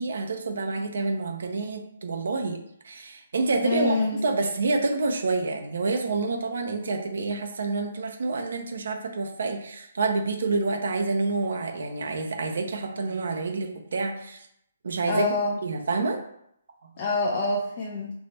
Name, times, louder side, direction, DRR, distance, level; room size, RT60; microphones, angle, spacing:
voice 1, 0.0-2.6 2.8-4.0 4.2-14.5 14.8-15.3 15.6-16.2, right 3 dB, 65° right, 3 dB, 0.7 m, -28 dB
voice 2, 3.6-4.2 15.1-15.6 17.0-18.1, left 2 dB, 40° left, -2 dB, 0.7 m, -26 dB
3.5 x 3.1 x 4.0 m, 0.74 s
figure-of-eight pair, 135°, 0 cm